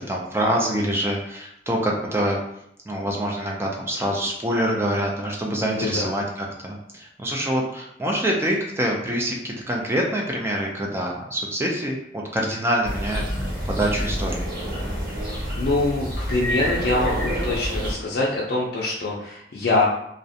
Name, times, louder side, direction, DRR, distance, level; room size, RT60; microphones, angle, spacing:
voice 1, 0.0-2.4 2.9-14.5, right 1 dB, 15° right, -1 dB, 0.3 m, -25 dB
voice 2, 5.7-6.1 15.2-19.9, left 2 dB, 60° left, -5 dB, 0.4 m, -24 dB
sound 1, 12.8-17.9, equal, 60° right, 1.0 m, -27 dB
2.4 x 2.1 x 2.6 m, 0.75 s
head